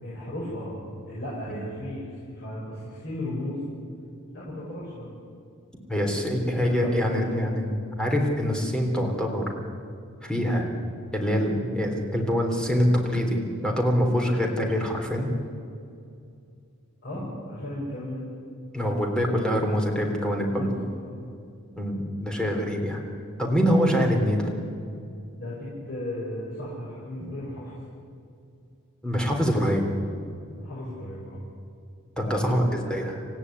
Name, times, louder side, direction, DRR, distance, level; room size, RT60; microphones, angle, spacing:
voice 1, 0.0-0.8 1.1-3.7 4.3-5.2 6.1-7.6 17.0-18.2 20.4-21.2 23.6-23.7 25.3-27.8 30.6-31.4 32.2-33.1, left 1 dB, 45° left, -6 dB, 5.6 m, -35 dB
voice 2, 5.9-9.5 10.2-10.7 11.1-15.3 17.1-17.2 18.7-20.7 21.8-23.0 23.4-24.5 27.2-27.3 29.0-29.9 32.2-32.6 32.9-33.1, equal, 5° left, 1 dB, 3.5 m, -25 dB
27.0 x 15.5 x 9.7 m, 2.4 s
head